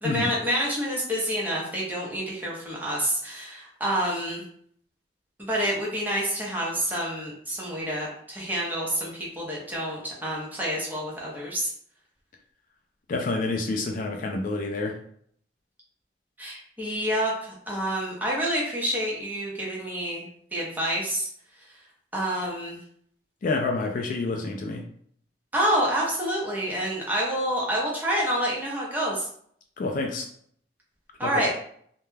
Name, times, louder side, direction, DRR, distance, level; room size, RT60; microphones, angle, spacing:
voice 1, 0.0-4.4 5.4-11.7 16.4-20.3 20.5-21.3 22.1-22.8 25.5-29.3 31.2-31.5, equal, 10° right, -5 dB, 0.7 m, -28 dB
voice 2, 13.1-15.0 23.4-24.8 29.8-30.3 31.2-31.5, left 3 dB, 50° left, 2 dB, 0.3 m, -28 dB
2.2 x 2.1 x 3.1 m, 0.63 s
head